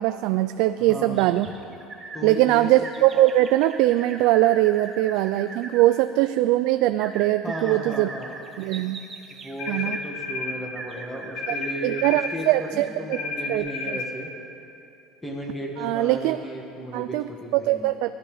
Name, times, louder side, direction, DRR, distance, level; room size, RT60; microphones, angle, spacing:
voice 1, 0.0-1.5 2.2-8.1 8.6-9.0 9.7-10.0 11.5-11.6 11.8-13.2 13.5-14.0 15.8-16.4 16.9-18.1, right 15 dB, 60° right, 11 dB, 0.4 m, -22 dB
voice 2, 0.8-1.3 2.1-2.7 7.4-8.4 9.4-12.0 12.3-14.3 15.2-17.9, right 1 dB, 5° left, -1 dB, 1.9 m, -35 dB
sound 1, 1.1-2.2 2.8-5.9 7.0-10.1 10.8-13.0 13.5-13.6, right 3 dB, 15° right, 1.0 m, -40 dB
sound 2, 9.6-10.6 11.4-12.3 13.1-14.1, left 4 dB, 70° left, 2.5 m, -31 dB
19.0 x 12.0 x 5.0 m, 2.7 s
cardioid pair, 170°, 0 cm